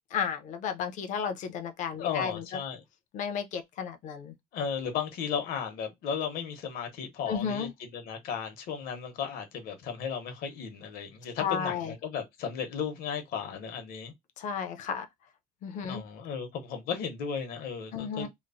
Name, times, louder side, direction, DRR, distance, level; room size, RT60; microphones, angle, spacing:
voice 1, 0.1-2.4 3.1-4.3 7.3-7.7 11.4-11.9 14.4-15.1 15.6-16.0 17.9-18.3, left 7 dB, 50° left, 0.5 m, -33 dB
voice 2, 2.0-2.8 4.5-14.1 15.9-18.3, left 7 dB, 65° left, 0.9 m, -35 dB
3.0 x 2.0 x 2.5 m
cardioid pair, 175°, 16 cm